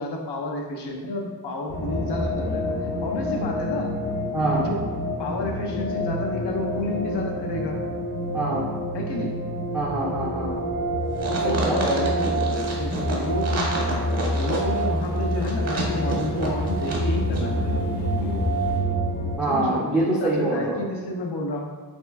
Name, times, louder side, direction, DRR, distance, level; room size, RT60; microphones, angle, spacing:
voice 1, 0.0-2.6 3.0-3.9 4.5-4.8 5.2-7.8 8.9-9.3 11.3-18.5 19.5-21.7, left 2 dB, 85° left, 1 dB, 0.7 m, -30 dB
sound 1, 1.7-19.4, equal, 50° left, 0.7 m, -27 dB
voice 2, 4.3-4.6 8.3-8.7 9.7-10.6 11.6-12.1 19.4-20.8, right 2 dB, 5° right, -8 dB, 0.4 m, -24 dB
sound 2, 11.2-17.1 17.3-17.4, right 2 dB, 40° right, 0.7 m, -30 dB
sound 3, 12.6-18.8, right 1 dB, 70° left, 1.1 m, -42 dB
3.1 x 2.8 x 3.4 m, 1.4 s
wide cardioid pair, 180°, 40 cm